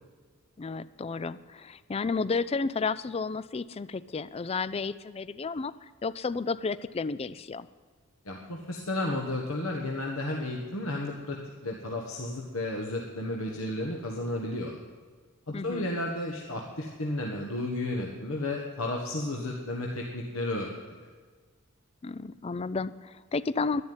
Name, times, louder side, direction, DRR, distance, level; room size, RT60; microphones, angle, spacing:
voice 1, 0.6-7.7 15.5-15.9 22.0-23.8, left 4 dB, 25° left, 16 dB, 0.4 m, -32 dB
voice 2, 8.2-14.8 15.5-20.7 21.0-21.1, left 1 dB, 65° left, -1 dB, 1.4 m, -33 dB
11.5 x 11.0 x 9.5 m, 1.5 s
head